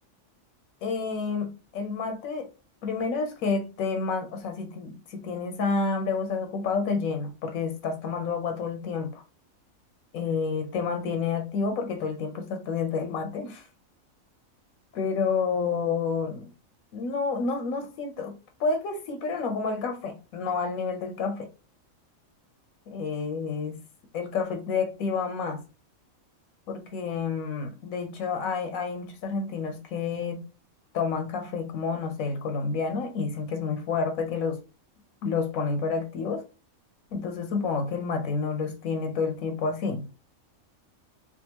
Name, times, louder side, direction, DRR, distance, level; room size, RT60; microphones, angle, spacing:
voice 1, 0.8-2.5 2.8-9.2 10.1-13.7 14.9-16.5 16.9-18.3 18.6-21.5 22.9-23.8 24.1-25.6 26.7-30.4 30.9-34.6 35.2-36.4 37.1-40.1, left 5 dB, 85° left, 1.1 m, -29 dB
3.5 x 2.4 x 2.8 m
omnidirectional pair, 1.4 m